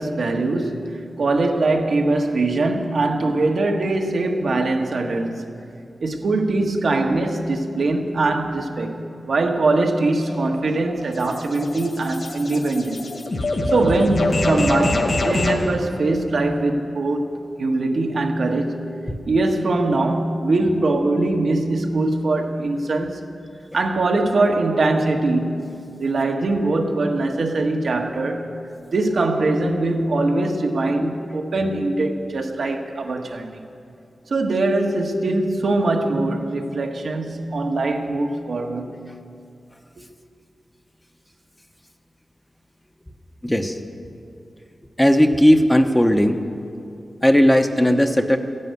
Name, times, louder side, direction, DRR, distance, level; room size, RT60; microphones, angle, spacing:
voice 1, 0.0-5.5 6.0-8.9 9.2-13.0 13.7-17.3 17.6-18.8 19.2-23.2 23.7-28.5 28.9-33.6 34.3-39.0, right 2 dB, 70° right, 2 dB, 1.4 m, -22 dB
sound 1, 10.2-15.7, left 2 dB, 55° left, 1.8 m, -25 dB
voice 2, 43.4-43.8 45.0-46.4 47.2-48.4, equal, 10° left, 6 dB, 0.8 m, -16 dB
14.0 x 11.0 x 9.4 m, 2.5 s
wide cardioid pair, 130°, 0 cm